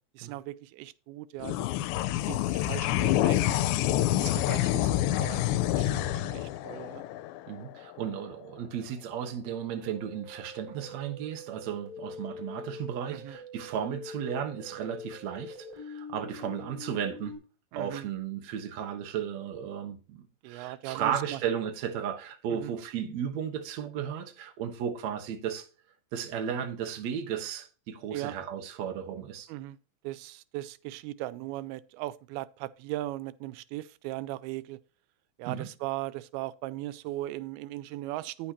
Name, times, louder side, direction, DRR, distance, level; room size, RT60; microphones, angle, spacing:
voice 1, 0.2-1.7 2.3-3.6 4.1-7.0 13.1-13.4 17.7-18.1 20.4-21.4 22.5-22.7 28.1-28.4 29.5-29.8 30.0-34.8 35.4-38.5, right 16 dB, 90° right, 2.5 m, -38 dB
sound 1, 1.4-8.1, left 14 dB, 90° left, 2.5 m, -27 dB
voice 2, 7.5-17.3 17.7-25.7 26.1-29.5 35.5-35.7, right 8 dB, 60° right, 2.0 m, -34 dB
sound 2, 9.8-17.4, left 3 dB, 15° left, 4.1 m, -44 dB
9.7 x 8.6 x 2.9 m
omnidirectional pair, 4.3 m